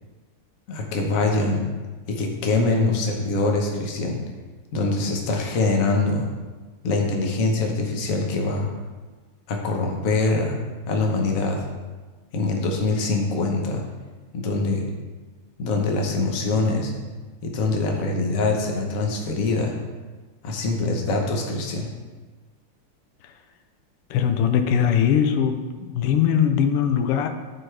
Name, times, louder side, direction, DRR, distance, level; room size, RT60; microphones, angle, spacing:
voice 1, 0.7-1.7 2.1-4.2 4.7-6.3 6.8-8.7 9.5-10.6 10.9-11.6 12.3-13.8 14.3-14.8 15.6-16.9 17.4-19.8 20.4-21.9, left 3 dB, 50° left, 1 dB, 1.2 m, -23 dB
voice 2, 24.1-27.3, left 8 dB, 90° left, 7 dB, 1.6 m, -21 dB
13.0 x 4.5 x 3.3 m, 1.3 s
omnidirectional pair, 2.4 m